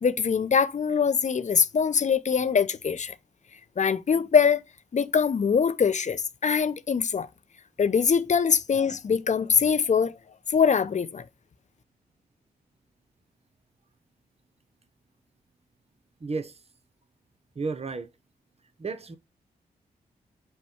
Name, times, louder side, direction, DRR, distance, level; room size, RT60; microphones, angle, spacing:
voice 1, 0.0-3.1 3.8-4.6 4.9-7.3 7.8-10.2 10.5-11.2, left 6 dB, 45° left, 0.5 m, -23 dB
voice 2, 16.2-16.5 17.6-18.1 18.8-19.2, right 4 dB, 40° right, 0.8 m, -32 dB
5.4 x 2.2 x 4.3 m
supercardioid pair, 40°, 17 cm